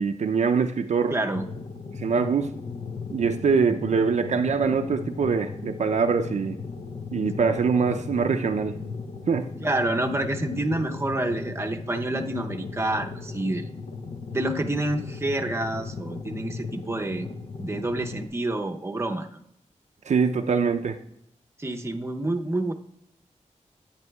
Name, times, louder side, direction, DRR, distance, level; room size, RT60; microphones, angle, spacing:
voice 1, 0.0-1.2 2.0-2.5 3.1-6.6 7.1-8.8 9.3-9.5 20.1-21.0, right 5 dB, 70° right, 6 dB, 0.5 m, -23 dB
voice 2, 1.1-1.4 9.6-13.7 14.3-17.3 17.6-19.4 21.6-22.7, right 1 dB, 20° right, 4 dB, 0.7 m, -28 dB
sound 1, 1.3-18.3, left 4 dB, 70° left, 0.6 m, -37 dB
11.0 x 8.6 x 2.3 m, 0.72 s
wide cardioid pair, 100°, 12 cm